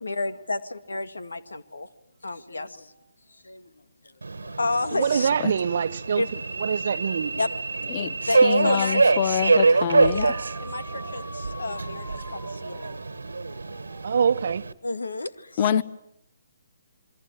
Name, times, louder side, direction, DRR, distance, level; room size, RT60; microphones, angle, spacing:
voice 1, 0.0-1.9 2.2-2.9 3.3-3.7 4.0-4.1 4.4-5.3 6.2-6.3 7.4-7.5 8.0-9.0 10.1-13.0 14.8-15.8, left 2 dB, 85° left, 2.1 m, -31 dB
Subway metro underground, 4.2-14.7, right 3 dB, 85° right, 1.4 m, -25 dB
voice 2, 4.9-6.2 6.6-7.4 8.0-8.1 14.0-14.7, right 7 dB, 60° right, 1.0 m, -24 dB
voice 3, 8.4-10.3 15.6-15.8, left 9 dB, 35° left, 1.1 m, -25 dB
sound 1, 9.9-14.5, left 1 dB, 10° left, 2.3 m, -45 dB
27.5 x 23.5 x 8.9 m
figure-of-eight pair, 145°, 0 cm